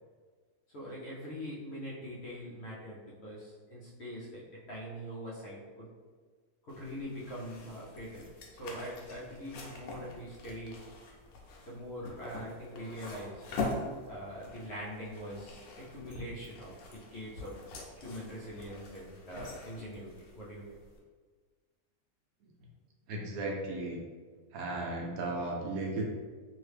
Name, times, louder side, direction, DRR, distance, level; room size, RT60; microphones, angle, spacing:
voice 1, 0.7-4.4 4.7-5.9 6.6-8.3 8.5-10.8 11.7-13.5 14.1-17.5 17.9-20.6, equal, 55° left, -6 dB, 0.8 m, -43 dB
sound 1, 6.7-21.0, left 3 dB, 80° left, 1.1 m, -44 dB
voice 2, 23.1-24.0 24.5-26.0, right 2 dB, 75° right, -1 dB, 1.0 m, -36 dB
2.9 x 2.7 x 3.3 m, 1.5 s
omnidirectional pair, 1.6 m